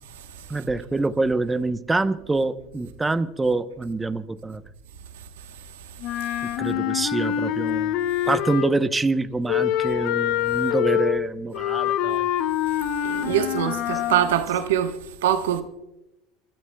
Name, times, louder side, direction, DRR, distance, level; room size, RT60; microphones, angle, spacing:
voice 1, 0.5-4.6 6.6-7.9 8.3-12.3, right 3 dB, 15° right, 0.8 m, -25 dB
Wind instrument woodwind instrument, 6.0-8.9 9.5-14.3, left 11 dB, 65° left, 0.7 m, -25 dB
voice 2, 13.0-14.9 15.2-15.6, right 10 dB, 85° right, 1.1 m, -23 dB
29.0 x 12.0 x 2.2 m
supercardioid pair, 95°, 0 cm